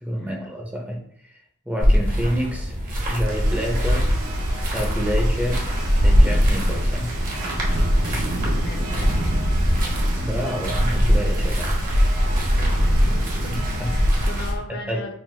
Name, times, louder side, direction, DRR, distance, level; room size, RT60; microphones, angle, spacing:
voice 1, 0.0-1.0 1.7-2.8 3.1-4.1 4.7-5.7 6.0-7.2 10.2-11.7 13.8-13.9 14.9-15.0, equal, 5° right, -1 dB, 0.6 m, -28 dB
sound 1, 1.8-14.6, equal, 40° right, 1.0 m, -21 dB
sound 2, 3.1-11.0, equal, 80° left, 1.3 m, -42 dB
Rain, 3.3-14.5, right 1 dB, 75° right, 1.0 m, -33 dB
voice 2, 8.6-9.6 12.5-15.1, left 2 dB, 50° left, 4 dB, 0.6 m, -38 dB
5.8 x 2.5 x 2.3 m, 0.63 s
head